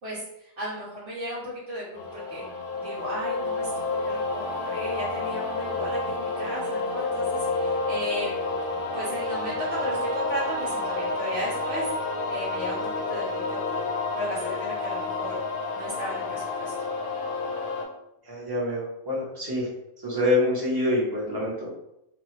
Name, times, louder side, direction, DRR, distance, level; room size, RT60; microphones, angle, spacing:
voice 1, 0.0-1.8 2.1-2.4 2.8-8.3 8.9-11.8 12.3-13.8 14.1-15.4 15.7-16.7, equal, 70° right, -9 dB, 1.2 m, -35 dB
sound 1, 1.9-17.9, left 3 dB, 55° left, 0.6 m, -30 dB
voice 2, 18.3-19.7 20.0-21.7, left 1 dB, 20° right, -5 dB, 0.8 m, -26 dB
2.7 x 2.3 x 3.1 m, 0.84 s
omnidirectional pair, 1.3 m